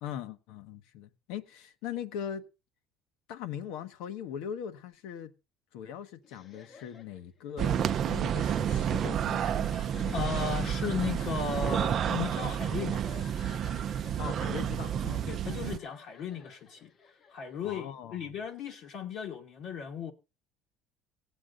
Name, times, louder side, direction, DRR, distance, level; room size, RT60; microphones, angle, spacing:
voice 1, 0.0-2.4 3.3-5.3 5.7-10.7 14.2-15.3 17.6-18.4, left 9 dB, 75° left, 1.2 m, -41 dB
sound 1, 6.2-17.9, left 5 dB, 30° left, 0.8 m, -52 dB
sound 2, 7.6-15.8, right 9 dB, 35° right, 0.5 m, -30 dB
voice 2, 10.1-13.0 15.3-16.9 17.3-20.1, left 6 dB, 50° left, 1.2 m, -36 dB
17.5 x 8.4 x 3.8 m
cardioid pair, 155°, 0 cm